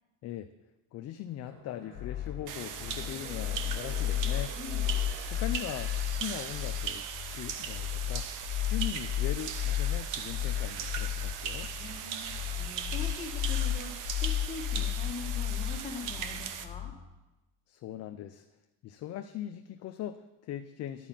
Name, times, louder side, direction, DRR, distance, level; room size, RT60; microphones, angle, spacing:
voice 1, 0.9-4.6 5.3-7.1 7.3-8.3 8.6-11.7 17.7-18.5 18.8-21.1, left 12 dB, 40° left, 8 dB, 0.4 m, -40 dB
sound 1, 1.4-6.9 7.3-7.4, right 1 dB, 30° right, 3.4 m, -50 dB
sound 2, 1.9-16.9, left 11 dB, 60° left, 1.5 m, -33 dB
sound 3, 2.5-16.7, right 8 dB, 50° right, 0.8 m, -39 dB
voice 2, 4.5-4.9 11.8-12.2 12.5-16.9, left 4 dB, 15° left, -1 dB, 1.9 m, -42 dB
11.0 x 5.0 x 7.2 m, 1.0 s
cardioid pair, 130°, 42 cm